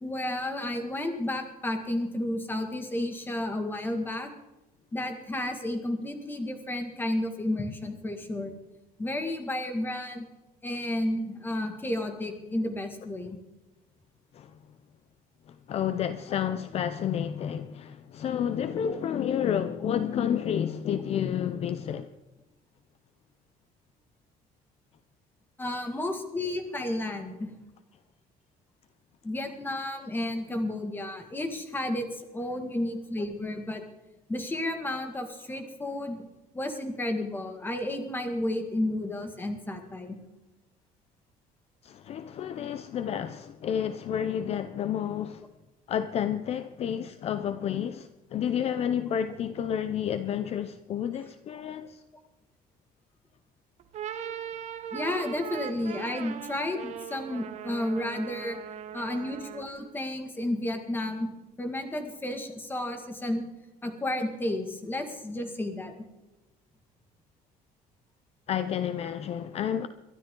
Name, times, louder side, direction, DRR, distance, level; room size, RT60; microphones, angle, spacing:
voice 1, 0.0-4.3 4.9-8.5 9.0-10.3 10.6-13.4 18.8-19.0 25.6-27.5 29.2-33.8 34.3-36.3 36.5-40.2 54.9-58.6 58.9-61.3 61.6-63.4 63.8-65.9, left 1 dB, 15° left, 1.9 m, -32 dB
voice 2, 15.5-22.1 41.8-45.4 45.9-52.0 68.5-69.9, left 9 dB, 40° left, 0.6 m, -30 dB
sound 1, 53.8-59.8, right 9 dB, 45° right, 1.1 m, -39 dB
22.5 x 12.5 x 3.8 m
cardioid pair, 165°, 16 cm